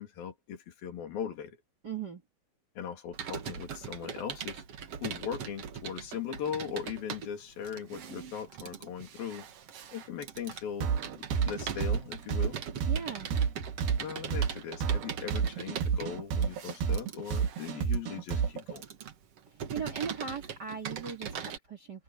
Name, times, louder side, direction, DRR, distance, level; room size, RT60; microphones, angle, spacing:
voice 1, 0.0-1.6 2.8-4.6 5.0-9.5 9.9-12.6 14.0-18.9, left 8 dB, 75° left, 4.6 m, -39 dB
voice 2, 1.8-2.2 12.9-13.3 19.7-22.0, right 7 dB, 30° right, 2.3 m, -38 dB
Computer keyboard, 3.1-21.6, right 7 dB, 55° right, 2.1 m, -41 dB
sound 1, 10.8-18.7, right 6 dB, 85° right, 3.8 m, -29 dB
omnidirectional pair, 4.2 m